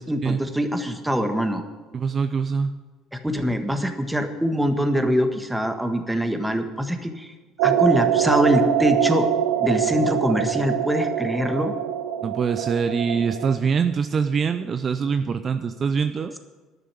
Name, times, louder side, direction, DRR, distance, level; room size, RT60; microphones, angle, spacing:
voice 1, 0.1-1.6 3.1-7.3 7.6-9.3 9.6-11.7, equal, 5° right, 6 dB, 1.5 m, -23 dB
voice 2, 1.9-2.8 12.2-16.3, right 6 dB, 40° right, 10 dB, 0.6 m, -24 dB
sound 1, 7.6-13.6, right 10 dB, 85° right, 1.0 m, -24 dB
11.0 x 6.8 x 9.2 m, 1.3 s
hypercardioid pair, 75°, 0 cm